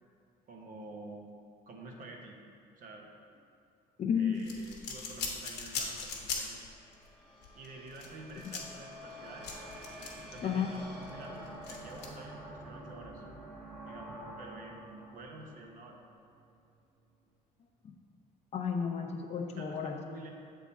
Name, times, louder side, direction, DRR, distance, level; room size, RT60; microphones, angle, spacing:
voice 1, 0.5-1.2 1.7-2.4 2.7-3.1 4.1-6.6 7.5-9.5 10.3-13.2 13.9-16.0 19.5-20.3, right 2 dB, 55° right, 1 dB, 0.9 m, -49 dB
voice 2, 4.0-4.4 8.4-8.5 10.4-10.7 17.8-17.9 18.5-20.0, left 7 dB, 40° left, 1 dB, 0.6 m, -32 dB
sound 1, 4.4-6.7 6.9-7.1 7.4-10.4 10.8-12.1, left 5 dB, 80° left, 1.0 m, -40 dB
sound 2, 6.2-16.5, right 1 dB, ahead, 1.2 m, -48 dB
7.1 x 3.6 x 4.2 m, 2.4 s
cardioid pair, 110°, 17 cm